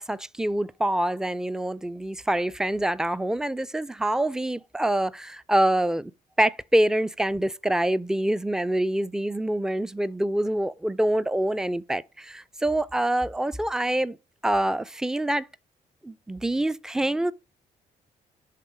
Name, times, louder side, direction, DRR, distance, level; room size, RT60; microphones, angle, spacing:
voice 1, 0.0-6.1 6.4-14.2 14.4-15.5 16.0-17.3, right 1 dB, 5° right, 0.4 m, -25 dB
11.0 x 3.6 x 5.0 m
figure-of-eight pair, 40°, 20 cm